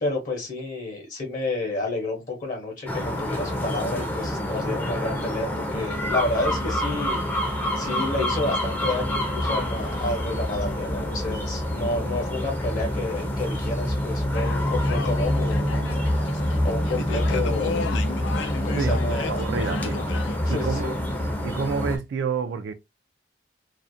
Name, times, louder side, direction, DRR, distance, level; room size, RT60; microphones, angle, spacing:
voice 1, 0.0-16.3 16.6-17.8 18.6-19.4 20.4-20.9, left 2 dB, 45° left, 0.7 m, -30 dB
sound 1, 2.9-22.0, equal, 10° left, 0.4 m, -27 dB
sound 2, 14.3-20.4, left 5 dB, 85° left, 0.3 m, -34 dB
voice 2, 18.7-20.0 20.5-21.0 21.4-22.7, right 5 dB, 75° right, 0.3 m, -29 dB
2.4 x 2.0 x 2.5 m
head